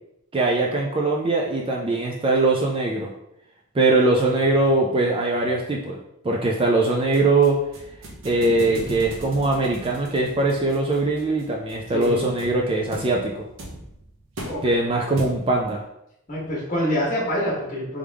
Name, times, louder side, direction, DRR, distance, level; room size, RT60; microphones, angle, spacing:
voice 1, 0.3-3.1 3.7-6.0 6.2-7.6 8.2-13.3 14.6-15.8, right 2 dB, 25° right, -1 dB, 0.3 m, -21 dB
sound 1, 6.8-15.7, right 1 dB, 60° right, 0.8 m, -39 dB
voice 2, 11.9-12.3 14.4-14.6 16.3-18.0, equal, 35° left, -4 dB, 1.3 m, -26 dB
3.5 x 3.4 x 3.4 m, 0.81 s
head